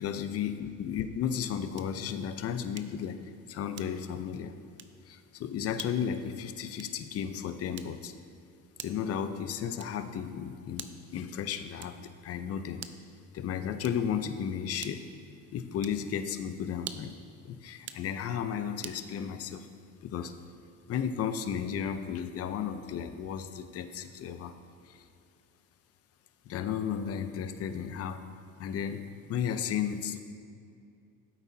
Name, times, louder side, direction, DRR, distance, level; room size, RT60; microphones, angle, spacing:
voice 1, 0.0-3.2 3.5-4.5 5.1-8.1 8.8-12.8 13.3-15.0 15.5-17.1 17.4-19.7 20.0-20.4 20.9-24.5 24.9-25.0 26.5-28.2 28.6-30.2, left 8 dB, 45° left, 9 dB, 0.6 m, -34 dB
sound 1, 1.7-2.1 2.8-3.1 3.7-4.2 4.7-5.0 5.7-6.0 6.7-7.1 7.7-8.2 8.8-9.1 9.8-10.1 10.7-11.2 11.8-12.1 12.7-13.1 13.8-14.2 14.8-15.2 15.8-16.1 16.8-17.2 17.8-18.1 18.8-19.1, right 9 dB, 35° right, 0.5 m, -46 dB
14.0 x 8.3 x 2.8 m, 2.4 s
cardioid pair, 120°, 33 cm